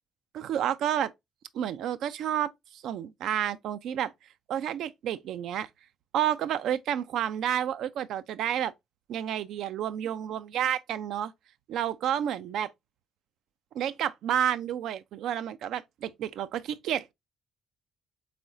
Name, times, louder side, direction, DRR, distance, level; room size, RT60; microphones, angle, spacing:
voice 1, 0.3-1.1 1.5-4.1 4.5-5.7 6.1-8.7 9.1-11.3 11.7-12.7 13.7-17.1, right 10 dB, 75° right, 0.3 m, -30 dB
3.7 x 3.3 x 2.6 m
supercardioid pair, 60°, 0 cm